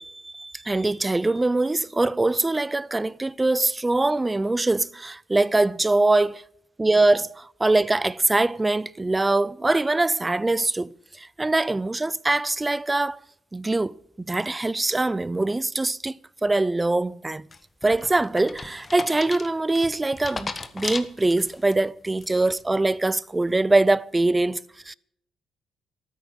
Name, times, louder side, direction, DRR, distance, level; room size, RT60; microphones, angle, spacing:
voice 1, 0.0-6.4 6.8-13.2 13.5-17.5 17.8-24.9, right 2 dB, 15° right, 0.5 m, -23 dB
sound 1, 17.5-21.7 22.2-22.6, left 3 dB, 30° left, 1.4 m, -36 dB
13.0 x 9.3 x 8.0 m
cardioid pair, 90°, 0 cm